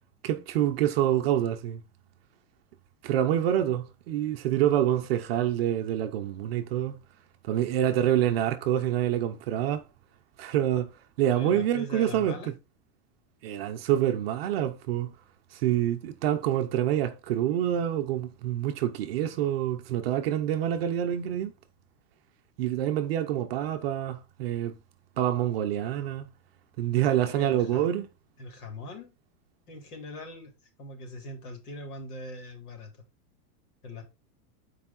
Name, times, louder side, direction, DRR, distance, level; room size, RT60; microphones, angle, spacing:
voice 1, 0.2-1.8 3.0-7.0 7.4-9.9 10.4-10.9 11.2-12.4 13.4-15.1 15.5-21.5 22.6-24.7 25.2-26.2 26.8-28.1, right 11 dB, 40° right, 0.7 m, -26 dB
voice 2, 11.3-12.5 27.0-27.9 28.4-29.1 29.7-30.5 30.8-32.9 33.8-34.1, left 1 dB, 65° left, 3.6 m, -41 dB
8.5 x 4.8 x 4.2 m
supercardioid pair, 175°, 48 cm